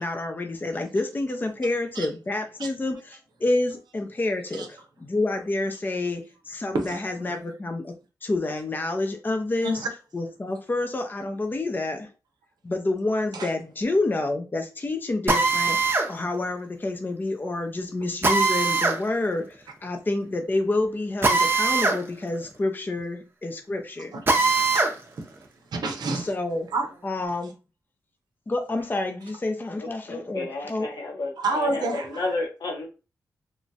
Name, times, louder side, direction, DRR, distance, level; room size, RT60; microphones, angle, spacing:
voice 1, 0.0-7.9 8.2-9.8 10.1-12.1 12.6-24.1 26.2-26.7 27.0-27.5 28.5-30.9, left 2 dB, 30° left, 0.5 m, -28 dB
voice 2, 6.7-7.4 9.6-9.9 13.3-13.5 24.1-24.2 24.7-25.3 25.7-26.3 26.7-26.9 31.4-32.2, right 3 dB, 80° right, 0.6 m, -29 dB
Drill, 15.3-16.1 18.2-19.0 21.2-22.0 22.4-22.5 24.3-24.9, right 3 dB, 30° right, 0.6 m, -21 dB
voice 3, 29.7-32.9, left 3 dB, 70° left, 1.0 m, -32 dB
3.0 x 2.2 x 2.7 m
cardioid pair, 65°, 7 cm